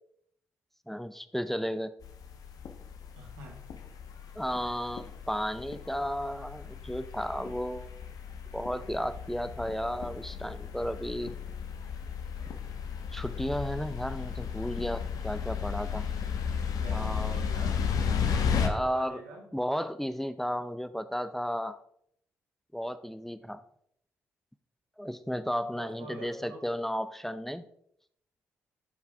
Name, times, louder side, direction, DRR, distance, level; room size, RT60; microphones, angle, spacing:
voice 1, 0.9-1.9 4.4-7.9 8.5-11.4 13.1-16.1 16.9-17.4 18.5-19.2 19.5-21.8 22.7-23.6 25.0-27.6, equal, 5° left, 12 dB, 0.6 m, -33 dB
sound 1, 2.0-18.7, left 7 dB, 65° left, 1.0 m, -34 dB
voice 2, 3.2-3.6 16.7-19.4 25.7-26.6, right 2 dB, 85° right, 1 dB, 1.6 m, -46 dB
11.5 x 4.7 x 3.5 m, 0.70 s
hypercardioid pair, 45°, 7 cm